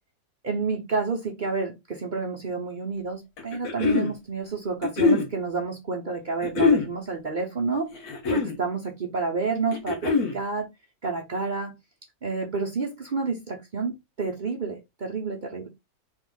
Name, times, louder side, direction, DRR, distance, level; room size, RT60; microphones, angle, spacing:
voice 1, 0.4-7.9 8.3-10.7 11.0-11.7 12.2-15.7, right 4 dB, 50° right, 0.6 m, -29 dB
sound 1, 3.4-4.1 4.8-5.3 6.4-6.9 7.9-8.6 9.7-10.4, left 4 dB, 70° left, 1.6 m, -22 dB
3.5 x 3.0 x 3.7 m
omnidirectional pair, 1.6 m